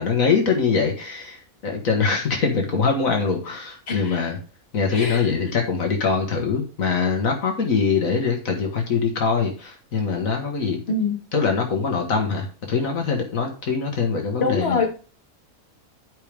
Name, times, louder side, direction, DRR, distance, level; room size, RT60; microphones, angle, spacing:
voice 1, 0.0-4.4 4.7-10.8 11.3-14.9, left 5 dB, 75° left, 2 dB, 1.8 m, -23 dB
voice 2, 3.9-4.2 4.9-5.3 10.9-11.2 14.4-14.9, left 4 dB, 50° left, 1 dB, 1.9 m, -24 dB
11.5 x 5.2 x 3.4 m, 0.36 s
omnidirectional pair, 1.4 m